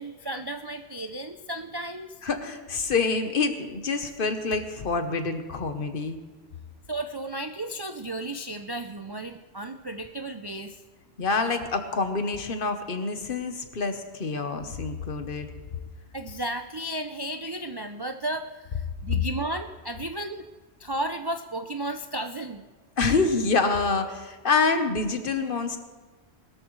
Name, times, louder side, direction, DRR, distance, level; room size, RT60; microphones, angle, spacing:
voice 1, 0.0-2.1 6.9-10.8 16.1-20.5 20.8-22.6, right 1 dB, 40° right, 7 dB, 0.3 m, -34 dB
voice 2, 2.2-6.2 11.2-15.5 23.0-25.8, left 4 dB, 55° left, 8 dB, 1.2 m, -26 dB
20.5 x 13.0 x 3.2 m, 1.3 s
omnidirectional pair, 1.1 m